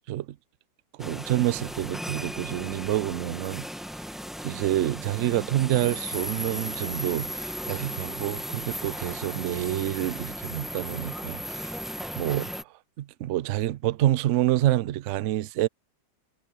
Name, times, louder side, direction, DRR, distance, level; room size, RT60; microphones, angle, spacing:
sound 1, 1.0-12.6, equal, ahead, 1.0 m, -36 dB
voice 1, 1.0-3.6 4.4-11.8 12.2-12.5 13.0-15.7, right 14 dB, 75° right, 0.7 m, -27 dB
omnidirectional pair, 1.9 m